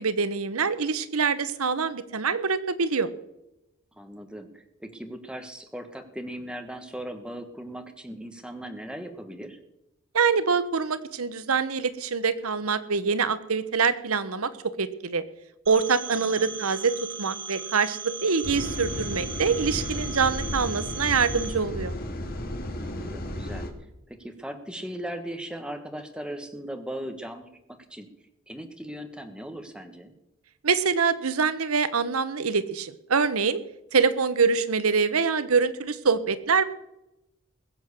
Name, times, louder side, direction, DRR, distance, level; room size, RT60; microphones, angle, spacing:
voice 1, 0.0-3.1 10.1-15.2 15.7-21.9 30.6-33.6 33.9-36.6, right 5 dB, 80° right, 14 dB, 1.0 m, -25 dB
voice 2, 4.0-9.6 16.1-16.5 22.8-23.7 24.1-27.5 27.9-28.1 28.5-30.1, right 1 dB, 5° right, 6 dB, 1.5 m, -38 dB
Telephone, 15.7-21.5, right 6 dB, 65° right, 5.3 m, -38 dB
sound 1, 18.4-23.7, left 1 dB, 40° left, 1.9 m, -33 dB
21.0 x 7.7 x 6.7 m, 0.88 s
head